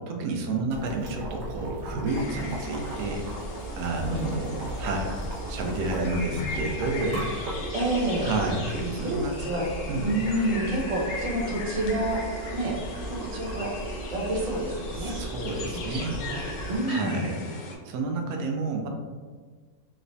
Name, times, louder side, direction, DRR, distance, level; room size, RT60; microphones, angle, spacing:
voice 1, 0.1-3.3 3.8-5.1 5.5-7.3 8.2-9.3 9.9-10.0 14.9-16.2 16.9-17.4 17.8-18.9, right 2 dB, 90° right, 2 dB, 1.1 m, -30 dB
Boiling, 0.7-16.8, right 2 dB, 55° right, 0.9 m, -37 dB
sound 1, 2.1-17.8, left 3 dB, 80° left, 1.1 m, -39 dB
voice 2, 4.1-4.6 6.3-6.4 7.7-8.3 9.0-9.6 10.0-12.2 12.5-12.8 13.3-13.7 14.1-15.2 15.9-16.0 16.3-16.4 16.7-17.2, right 1 dB, 40° right, -3 dB, 0.5 m, -28 dB
3.1 x 3.1 x 2.6 m, 1.5 s
omnidirectional pair, 1.5 m